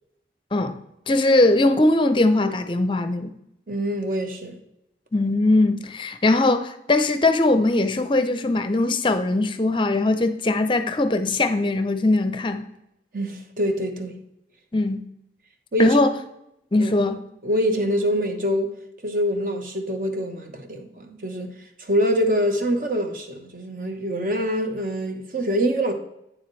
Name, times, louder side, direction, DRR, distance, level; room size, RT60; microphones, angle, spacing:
voice 1, 1.1-3.3 5.1-12.7 14.7-15.1 15.8-16.2 16.7-17.2, left 2 dB, 25° left, 0.5 m, -20 dB
voice 2, 3.7-4.5 13.1-14.2 15.7-16.0 16.8-16.9 17.4-18.7 19.0-21.5 21.8-25.9, equal, 50° right, 1.0 m, -25 dB
8.8 x 7.1 x 3.1 m
head